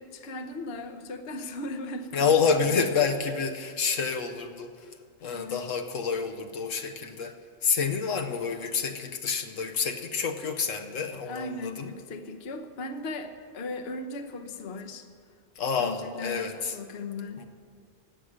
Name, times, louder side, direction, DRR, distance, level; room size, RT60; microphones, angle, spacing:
voice 1, 0.0-2.8 5.3-5.7 11.2-15.1 15.8-17.4, left 2 dB, 55° left, 7 dB, 1.1 m, -37 dB
voice 2, 2.1-4.8 5.2-7.3 7.6-11.9 15.6-16.7 17.4-17.5, left 5 dB, 75° left, 6 dB, 1.2 m, -28 dB
16.0 x 6.5 x 9.8 m, 2.2 s
omnidirectional pair, 1.4 m